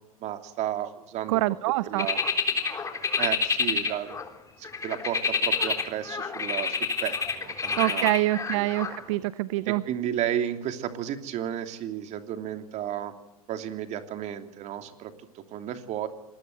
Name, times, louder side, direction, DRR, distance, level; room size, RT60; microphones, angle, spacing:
voice 1, 0.2-1.4 1.8-2.2 3.2-4.2 4.6-8.2 8.5-8.7 9.6-13.1 13.5-16.1, right 10 dB, 35° right, 7 dB, 3.0 m, -33 dB
voice 2, 1.3-2.1 7.8-9.8, right 18 dB, 55° right, 17 dB, 0.8 m, -25 dB
sound 1, 2.0-4.3 4.6-9.0, left 5 dB, 15° left, 3.7 m, -28 dB
25.5 x 20.0 x 7.9 m, 0.89 s
hypercardioid pair, 105°, 19 cm